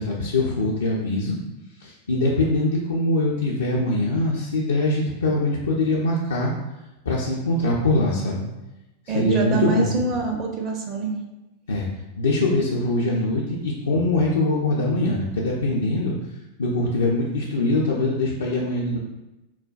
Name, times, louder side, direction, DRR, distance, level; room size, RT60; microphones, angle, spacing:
voice 1, 0.0-1.4 1.8-6.5 7.1-8.4 9.1-9.9 11.7-11.9 12.2-16.1 16.6-19.0, left 2 dB, 70° left, -4 dB, 0.4 m, -23 dB
voice 2, 9.1-11.2, right 4 dB, 35° right, 2 dB, 0.5 m, -25 dB
3.9 x 2.1 x 2.3 m, 0.98 s
figure-of-eight pair, 90°, 0 cm